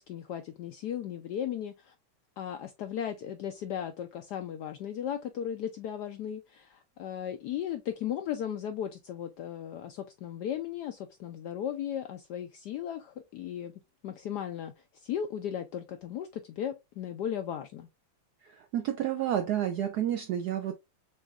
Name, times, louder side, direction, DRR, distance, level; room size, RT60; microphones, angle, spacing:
voice 1, 0.0-1.9 2.4-13.7 14.0-14.7 15.0-17.9, left 9 dB, 80° left, 0.9 m, -36 dB
voice 2, 18.4-20.8, right 10 dB, 80° right, 0.9 m, -30 dB
6.2 x 2.5 x 2.3 m
omnidirectional pair, 2.2 m